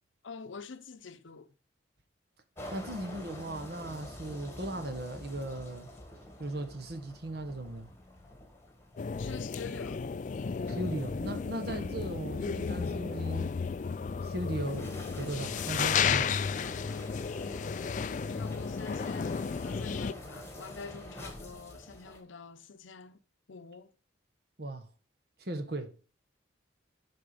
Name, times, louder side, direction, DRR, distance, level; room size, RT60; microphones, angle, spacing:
voice 1, 0.2-1.5 9.1-10.0 17.4-23.2 23.5-23.9, left 5 dB, 85° left, 0.7 m, -46 dB
sound 1, 2.6-22.2, left 1 dB, 15° left, 1.6 m, -48 dB
voice 2, 2.7-5.9 6.4-7.9 10.7-13.5 14.2-16.4 24.6-24.9 25.4-26.0, right 1 dB, 55° right, 1.2 m, -37 dB
sound 2, 9.0-20.1, left 6 dB, 40° left, 0.3 m, -33 dB
10.5 x 4.4 x 5.0 m
head